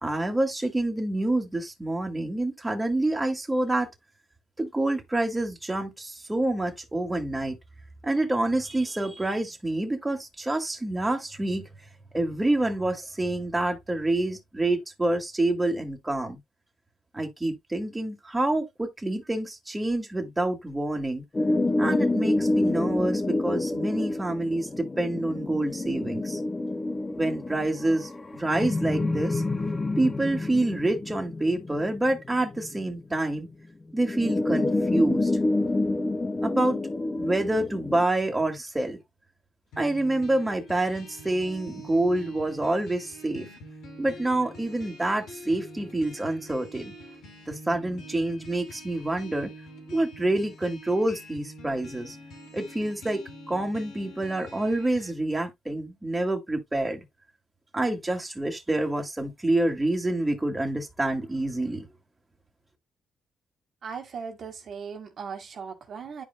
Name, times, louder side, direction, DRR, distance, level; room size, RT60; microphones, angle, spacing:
voice 1, 0.0-3.9 4.6-7.6 8.0-11.7 12.1-16.4 17.1-21.2 21.8-26.4 27.2-29.4 30.0-33.5 33.9-35.3 36.4-36.8 37.2-39.0 39.8-43.5 44.0-46.9 47.5-49.5 49.9-52.2 52.5-53.2 53.5-57.0 57.7-61.9, right 1 dB, 15° right, 2.1 m, -27 dB
sound 1, 21.3-33.2 34.0-38.0, left 2 dB, 20° left, 0.8 m, -28 dB
sound 2, 39.7-55.1, right 1 dB, 75° left, 3.1 m, -45 dB
voice 2, 63.8-66.2, right 6 dB, 55° right, 1.8 m, -38 dB
11.0 x 5.1 x 2.2 m
cardioid pair, 90°, 0 cm